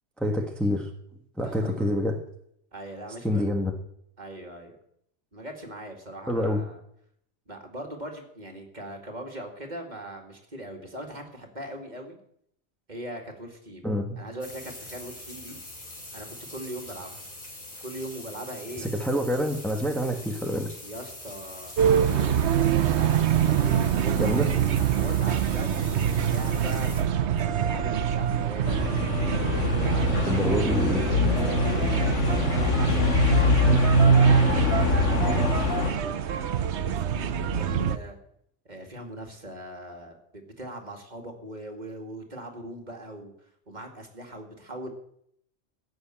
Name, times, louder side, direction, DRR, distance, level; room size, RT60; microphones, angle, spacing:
voice 1, 0.2-0.9 1.4-2.2 3.2-3.7 6.3-6.6 13.8-14.2 18.8-20.7 24.1-24.5 30.3-31.2, equal, ahead, 2 dB, 1.3 m, -27 dB
voice 2, 1.4-1.9 2.7-3.5 4.2-4.8 5.3-6.8 7.5-12.2 12.9-13.9 14.2-15.6 16.1-17.3 17.8-18.9 20.8-22.5 23.6-24.5 24.9-28.8 29.6-34.4 34.9-36.2 36.8-38.2 38.6-43.3 43.7-44.9, right 1 dB, 35° right, 2 dB, 2.4 m, -40 dB
sound 1, 14.4-27.0, left 1 dB, 40° left, 3.1 m, -43 dB
sound 2, 21.8-38.0, right 9 dB, 70° right, 1.0 m, -25 dB
sound 3, 28.7-35.9, left 1 dB, 75° left, 1.8 m, -23 dB
16.0 x 6.6 x 8.8 m, 0.70 s
omnidirectional pair, 1.2 m